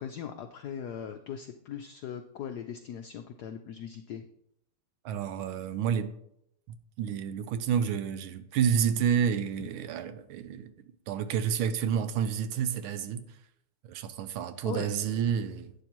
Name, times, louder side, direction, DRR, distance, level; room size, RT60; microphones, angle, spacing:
voice 1, 0.0-4.3 14.6-14.9, left 8 dB, 90° left, 0.8 m, -39 dB
voice 2, 5.0-6.1 6.7-10.7 11.1-13.4 13.8-15.7, right 8 dB, 80° right, 1.4 m, -29 dB
11.5 x 9.1 x 3.0 m
omnidirectional pair, 2.4 m